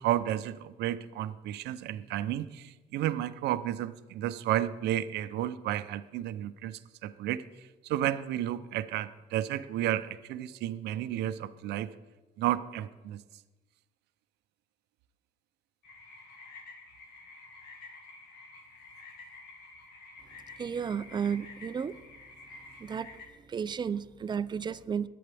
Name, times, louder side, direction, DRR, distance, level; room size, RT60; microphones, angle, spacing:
voice 1, 0.0-7.4 7.8-11.9 12.4-13.2, right 12 dB, 80° right, 12 dB, 0.6 m, -32 dB
sound 1, 15.8-23.3, left 3 dB, 70° left, 2.1 m, -50 dB
voice 2, 20.6-22.0 22.8-25.1, right 7 dB, 25° right, 14 dB, 0.5 m, -33 dB
21.5 x 8.7 x 3.4 m, 1.1 s
cardioid pair, 110°, 17 cm